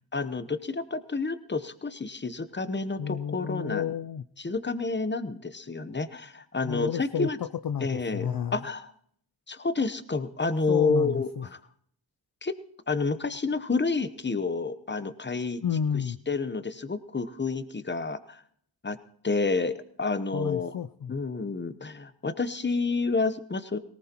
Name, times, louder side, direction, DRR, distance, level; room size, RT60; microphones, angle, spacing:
voice 1, 0.1-3.9 4.4-7.4 7.8-8.9 9.5-11.3 12.4-12.5 12.9-15.6 16.3-18.4 18.8-19.0 19.2-20.7 21.1-23.8, left 4 dB, 25° left, 12 dB, 0.9 m, -29 dB
voice 2, 3.0-4.2 6.6-8.6 10.7-11.5 15.6-16.2 20.3-21.2, left 8 dB, 50° left, 10 dB, 0.5 m, -31 dB
18.5 x 18.0 x 3.0 m, 0.65 s
cardioid pair, 45°, 45 cm